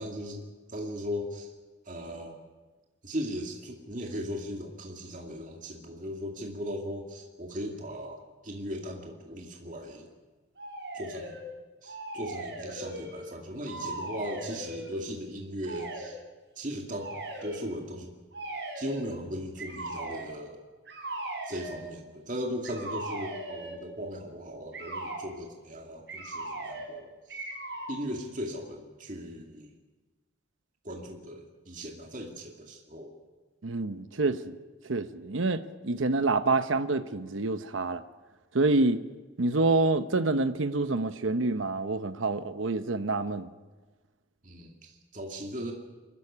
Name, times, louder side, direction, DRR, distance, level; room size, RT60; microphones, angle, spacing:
voice 1, 0.0-1.5 1.9-2.4 3.0-10.1 10.9-11.4 11.8-16.2 16.6-17.1 17.4-18.1 18.7-20.6 21.5-27.5 27.9-29.7 30.8-33.1 44.4-45.7, equal, 40° right, 1 dB, 2.3 m, -38 dB
sound 1, 10.6-11.4 11.8-13.3 13.6-14.9 15.6-16.1 17.0-17.6 18.3-19.1 19.6-20.3 20.9-21.8 22.6-23.8 24.7-25.2 26.1-27.0 27.3-28.0, right 2 dB, 60° right, 6.5 m, -38 dB
voice 2, 33.6-34.6 34.9-38.0 38.5-39.0 39.4-43.5, right 3 dB, 80° right, 11 dB, 0.9 m, -27 dB
24.5 x 14.5 x 9.8 m, 1.3 s
head